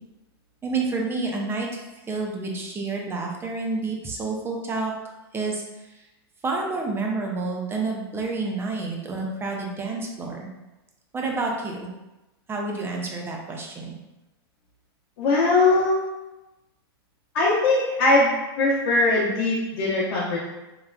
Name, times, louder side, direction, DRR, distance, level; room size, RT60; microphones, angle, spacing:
voice 1, 0.6-1.8 2.1-4.9 5.3-6.1 6.4-10.5 11.1-11.9 12.5-14.0, right 3 dB, 15° right, 0 dB, 0.5 m, -29 dB
voice 2, 15.2-16.0 17.3-18.3 18.6-20.4, left 2 dB, 65° left, -7 dB, 0.8 m, -20 dB
3.5 x 2.3 x 2.2 m, 1.0 s
hypercardioid pair, 120°, 13 cm